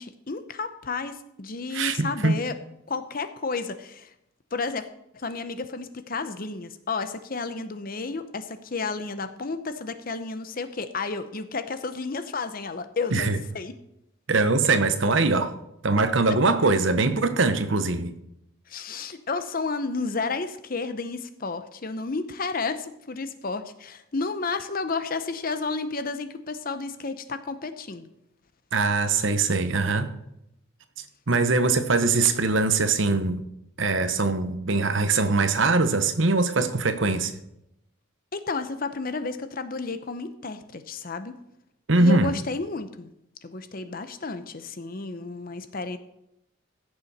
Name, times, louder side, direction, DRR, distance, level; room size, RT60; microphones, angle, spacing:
voice 1, 0.0-2.5 2.9-4.1 4.5-4.8 5.1-13.7 18.7-28.1 38.3-41.4 42.0-43.1 43.4-46.0, left 4 dB, 40° left, 11 dB, 0.7 m, -32 dB
voice 2, 1.7-2.4 13.1-13.4 14.3-15.5 15.8-18.1 28.7-30.1 31.3-33.4 33.8-37.3 41.9-42.3, right 3 dB, 60° right, 10 dB, 1.0 m, -22 dB
15.5 x 6.9 x 4.2 m, 0.81 s
head